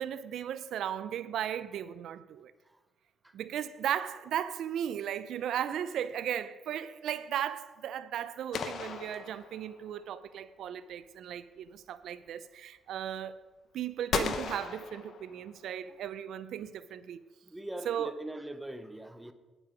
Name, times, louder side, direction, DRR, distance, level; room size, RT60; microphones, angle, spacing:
voice 1, 0.0-2.5 3.3-13.4 13.7-17.2 17.9-18.1, right 10 dB, 75° right, 0.5 m, -36 dB
sound 1, 8.5-10.0 14.1-15.7, left 6 dB, 65° left, 1.0 m, -36 dB
voice 2, 17.4-19.3, right 1 dB, 10° right, 0.8 m, -42 dB
9.1 x 8.9 x 5.0 m
cardioid pair, 90°, 0 cm